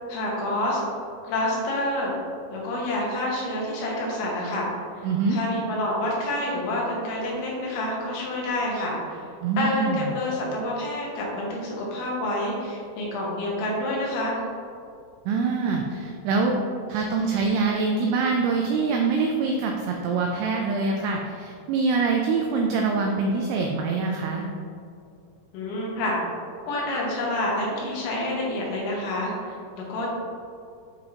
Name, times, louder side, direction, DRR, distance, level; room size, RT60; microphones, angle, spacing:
voice 1, 0.1-0.8 1.2-2.1 2.5-4.7 4.9-9.3 9.6-14.4 25.5-26.2 26.6-30.1, left 1 dB, 90° left, -3 dB, 3.6 m, -28 dB
voice 2, 5.0-5.4 9.4-10.1 15.3-16.6 16.9-24.5, right 4 dB, 85° right, 1 dB, 2.4 m, -24 dB
9.0 x 3.8 x 2.9 m, 2.5 s
omnidirectional pair, 5.1 m